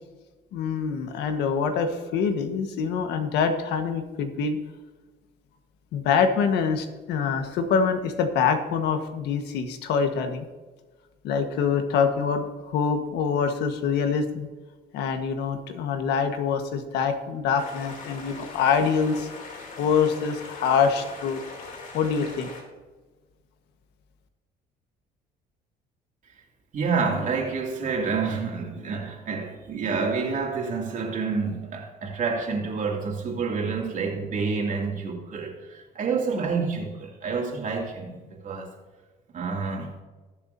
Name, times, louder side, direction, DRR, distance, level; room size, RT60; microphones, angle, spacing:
voice 1, 0.5-4.6 5.9-10.5 11.2-14.5 14.9-19.3 19.8-21.4 21.9-22.5, left 6 dB, 85° left, 1.5 m, -25 dB
sound 1, 17.6-22.6, left 4 dB, 55° left, 3.0 m, -41 dB
voice 2, 26.7-38.7 39.3-39.9, right 4 dB, 50° right, 2.7 m, -28 dB
20.5 x 7.0 x 2.8 m
cardioid pair, 110°, 17 cm